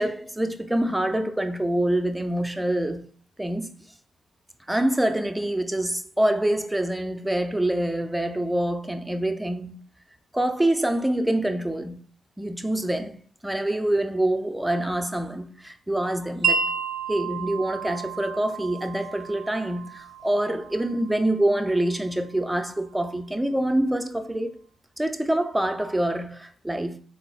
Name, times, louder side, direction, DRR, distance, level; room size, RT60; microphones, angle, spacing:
voice 1, 0.0-3.0 3.4-3.7 4.7-9.8 10.3-12.0 12.4-13.1 13.4-16.6 17.1-24.6 25.0-27.0, right 1 dB, 10° right, 0.5 m, -25 dB
Wind chime, 16.4-22.5, right 6 dB, 70° right, 0.3 m, -32 dB
3.6 x 2.1 x 2.5 m
hypercardioid pair, 45°, 0 cm